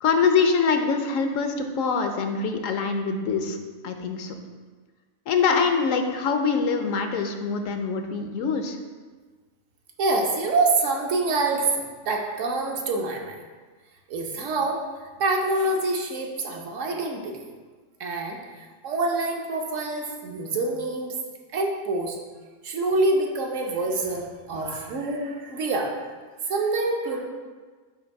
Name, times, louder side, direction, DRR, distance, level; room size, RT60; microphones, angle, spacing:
voice 1, 0.0-3.6 3.8-4.4 5.3-8.8, left 5 dB, 70° left, 6 dB, 0.9 m, -24 dB
voice 2, 10.0-13.4 14.1-14.8 15.2-17.5 18.0-21.1 21.5-22.2 22.6-26.1 26.5-27.2, right 2 dB, 65° right, 1 dB, 1.1 m, -26 dB
7.1 x 2.6 x 5.2 m, 1.4 s
omnidirectional pair, 1.4 m